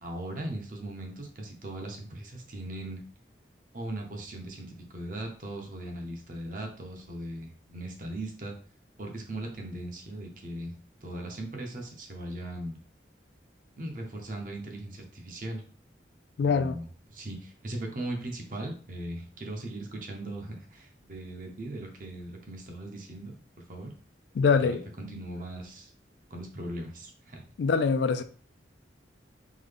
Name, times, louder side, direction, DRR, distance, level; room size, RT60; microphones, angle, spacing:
voice 1, 0.0-3.0 3.7-8.6 9.0-10.7 11.0-12.8 13.8-15.6 16.4-23.3 23.7-23.9 24.6-25.9 26.3-27.4, right 1 dB, 45° right, 0.8 m, -39 dB
voice 2, 16.4-16.8 24.3-24.8 27.6-28.2, left 5 dB, 70° left, 0.3 m, -24 dB
3.7 x 2.2 x 3.3 m
head